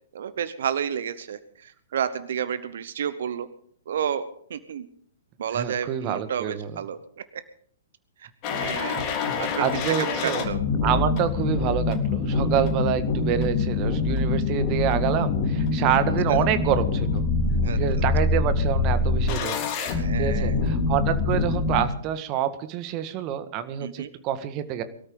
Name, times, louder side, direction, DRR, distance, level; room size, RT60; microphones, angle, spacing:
voice 1, 0.1-3.5 3.9-4.9 5.4-7.0 7.3-7.4 8.5-9.1 9.4-9.7 10.0-10.6 16.3-16.4 17.6-17.8 20.0-20.6 23.8-24.1, right 8 dB, 60° right, 14 dB, 0.9 m, -30 dB
voice 2, 5.5-6.7 9.0-10.5 10.8-17.3 17.7-19.6 19.9-24.8, right 10 dB, 35° right, 11 dB, 1.7 m, -27 dB
sound 1, 8.4-21.8, left 3 dB, 35° left, 3.8 m, -25 dB
23.5 x 13.0 x 3.9 m, 0.63 s
figure-of-eight pair, 115°, 0 cm